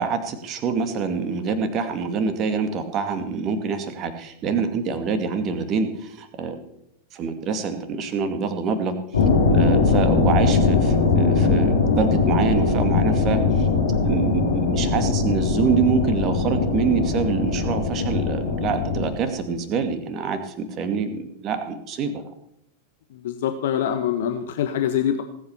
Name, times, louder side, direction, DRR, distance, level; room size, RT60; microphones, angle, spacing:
voice 1, 0.0-6.5 7.1-8.9 9.5-13.7 14.0-22.2, right 5 dB, 35° right, 8 dB, 2.4 m, -26 dB
sound 1, 9.1-19.1, left 4 dB, 70° left, 5.0 m, -20 dB
voice 2, 23.1-25.2, left 9 dB, 55° left, 8 dB, 1.2 m, -24 dB
19.0 x 8.8 x 6.9 m, 0.74 s
figure-of-eight pair, 90°, 0 cm